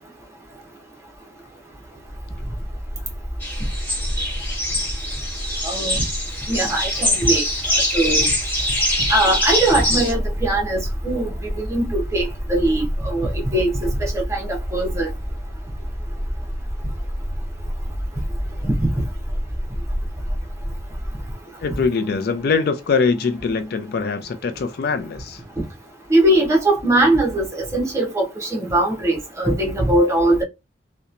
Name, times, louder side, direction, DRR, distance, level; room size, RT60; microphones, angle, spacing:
sound 1, 2.0-21.3, equal, 30° left, 1.2 m, -29 dB
sound 2, 3.4-10.1, equal, 10° left, 1.5 m, -23 dB
voice 1, 5.6-6.1 6.5-7.4 7.9-8.3 9.1-15.1 18.6-18.9 26.1-30.4, right 1 dB, 15° right, 0.7 m, -21 dB
voice 2, 21.6-25.4, left 5 dB, 60° left, 0.4 m, -22 dB
2.8 x 2.1 x 2.5 m
head